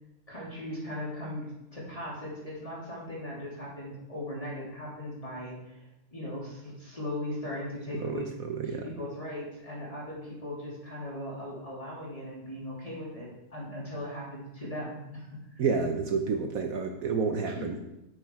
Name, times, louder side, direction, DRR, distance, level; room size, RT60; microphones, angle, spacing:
voice 1, 0.3-1.4 1.7-8.3 8.6-15.3 15.5-15.6 17.5-17.7, left 1 dB, 20° left, -6 dB, 3.5 m, -38 dB
voice 2, 7.9-8.9 15.6-17.8, right 5 dB, 65° right, 5 dB, 1.2 m, -30 dB
8.7 x 8.3 x 4.8 m, 0.90 s
omnidirectional pair, 1.7 m